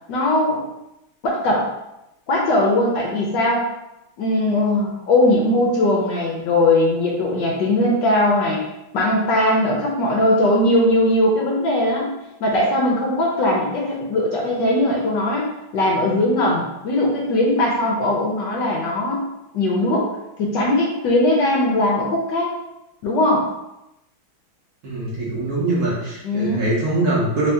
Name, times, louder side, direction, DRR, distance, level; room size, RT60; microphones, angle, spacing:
voice 1, 0.1-0.6 1.2-1.7 2.3-3.7 4.2-8.6 8.9-12.1 12.4-15.5 15.7-19.2 19.5-20.1 20.4-22.5 23.0-23.5 26.2-26.7, left 1 dB, 70° left, -2 dB, 1.2 m, -19 dB
voice 2, 24.8-27.5, right 2 dB, 55° right, -6 dB, 1.2 m, -22 dB
3.6 x 2.7 x 3.4 m, 0.90 s
omnidirectional pair, 2.3 m